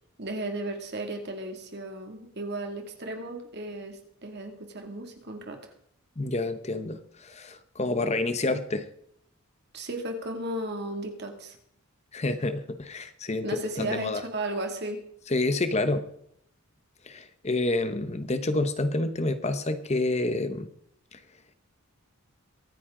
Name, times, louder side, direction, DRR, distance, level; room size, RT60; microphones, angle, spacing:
voice 1, 0.2-5.6 9.7-11.6 13.4-15.0, right 1 dB, 50° right, 4 dB, 2.4 m, -35 dB
voice 2, 6.2-8.9 12.1-14.2 15.3-16.0 17.0-20.7 21.1-21.2, left 2 dB, 30° left, 10 dB, 0.8 m, -28 dB
23.5 x 9.5 x 3.8 m, 0.69 s
head